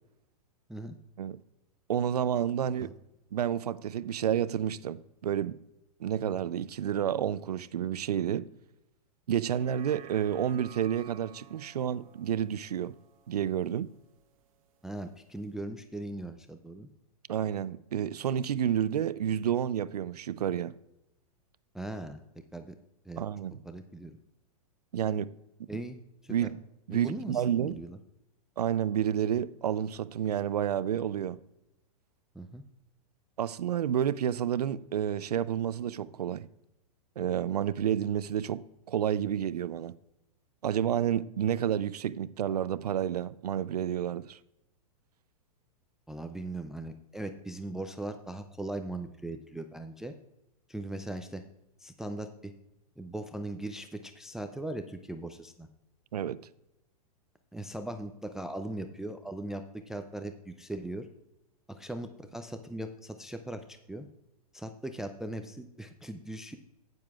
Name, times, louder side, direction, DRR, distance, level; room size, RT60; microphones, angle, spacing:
voice 1, 1.9-2.9 3.3-5.6 6.0-8.4 9.3-12.9 13.3-13.9 17.3-20.7 23.2-23.6 24.9-25.3 26.3-26.5 26.9-27.8 28.6-31.4 33.4-36.5 37.2-39.9 40.6-44.4 56.1-56.4, right 9 dB, 90° right, 0.5 m, -30 dB
sound 1, 9.4-14.0 14.4-14.5, right 8 dB, 60° right, 1.2 m, -54 dB
voice 2, 14.8-16.9 21.7-22.2 22.5-22.8 23.1-23.2 23.6-24.2 25.7-26.5 26.9-28.0 32.3-32.6 46.1-50.1 50.7-51.4 51.8-52.5 53.0-55.7 57.5-61.1 61.7-64.1 64.5-66.6, right 1 dB, ahead, 0.3 m, -39 dB
11.5 x 9.4 x 2.4 m
hypercardioid pair, 125°, 20 cm